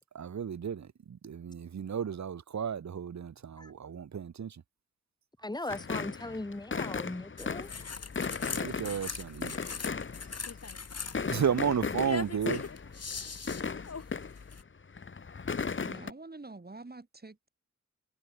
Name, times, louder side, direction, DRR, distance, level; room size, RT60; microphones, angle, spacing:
voice 1, 0.1-4.6 8.5-9.6 11.0-12.7, right 7 dB, 70° right, 1.0 m, -33 dB
voice 2, 5.4-7.7 8.4-8.5, left 2 dB, 15° left, 1.4 m, -38 dB
sound 1, 5.7-10.7 11.0-14.5 14.9-16.1, left 5 dB, 45° left, 1.1 m, -36 dB
sound 2, 7.4-14.6, left 5 dB, 60° left, 2.5 m, -41 dB
voice 3, 15.9-17.5, right 3 dB, 35° right, 5.7 m, -46 dB
wide cardioid pair, 90°, 29 cm